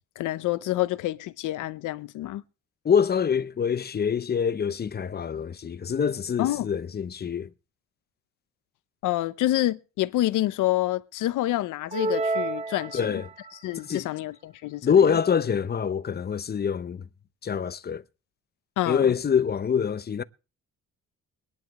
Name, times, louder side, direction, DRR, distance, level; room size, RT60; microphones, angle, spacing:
voice 1, 0.2-2.4 6.4-6.7 9.0-13.2 13.6-14.9 18.8-19.1, left 15 dB, 85° left, 0.8 m, -27 dB
voice 2, 2.8-7.5 12.9-13.3 13.8-14.1 14.8-17.0 17.4-18.0 18.9-20.2, left 7 dB, 35° left, 0.7 m, -25 dB
sound 1, 11.9-13.6, right 3 dB, 20° right, 0.6 m, -29 dB
22.0 x 11.0 x 3.1 m
cardioid pair, 90°, 30 cm